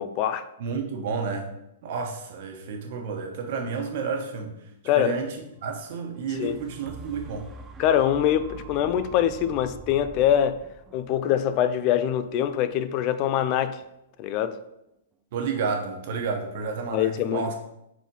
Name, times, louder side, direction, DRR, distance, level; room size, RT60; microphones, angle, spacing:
voice 1, 0.0-0.4 4.9-5.2 6.4-6.6 7.8-10.6 10.9-13.8 14.2-14.6 16.9-17.4, left 10 dB, 40° left, 0.3 m, -24 dB
voice 2, 0.6-1.5 1.8-4.7 4.9-7.5 15.3-17.5, right 5 dB, 55° right, 1.2 m, -31 dB
sound 1, 6.1-14.1 14.7-14.8, right 3 dB, 20° right, 0.5 m, -46 dB
4.5 x 4.1 x 5.4 m
hypercardioid pair, 140°, 0 cm